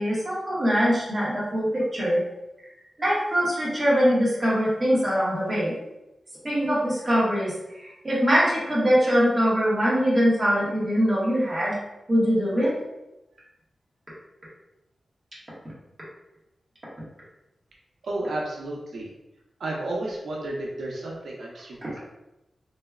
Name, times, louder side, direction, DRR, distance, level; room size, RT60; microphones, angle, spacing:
voice 1, 0.0-2.2 3.0-5.7 6.4-11.8 12.1-12.7, equal, 20° right, -8 dB, 1.1 m, -22 dB
voice 2, 18.0-19.1 19.6-22.0, right 2 dB, 85° right, -3 dB, 0.6 m, -32 dB
3.3 x 3.0 x 2.3 m, 0.95 s
wide cardioid pair, 170°, 0 cm